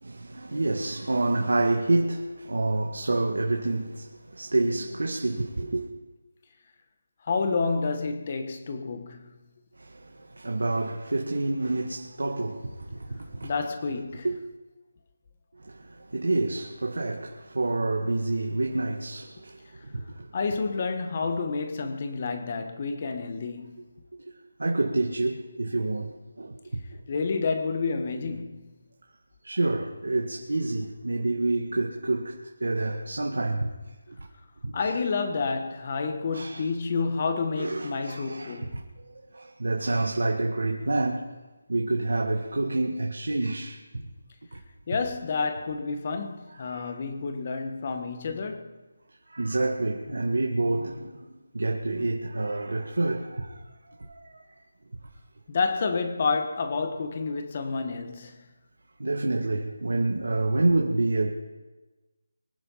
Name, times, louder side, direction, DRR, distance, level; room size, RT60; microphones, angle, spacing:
voice 1, 0.0-5.9 9.8-13.5 14.2-14.3 15.6-20.3 24.3-24.4 24.6-26.8 29.4-33.7 34.2-34.3 34.6-34.7 36.3-36.6 37.6-38.8 39.1-41.3 41.7-44.0 44.5-44.6 46.7-46.9 49.3-51.1 51.5-53.6 53.9-54.4 59.0-61.3, right 2 dB, 85° right, 2.1 m, -28 dB
voice 2, 7.2-9.3 13.4-14.3 20.3-23.9 27.1-28.7 34.7-38.8 44.9-48.8 55.5-58.5, left 4 dB, 35° left, 1.5 m, -29 dB
24.0 x 9.7 x 5.7 m
figure-of-eight pair, 170°, 0 cm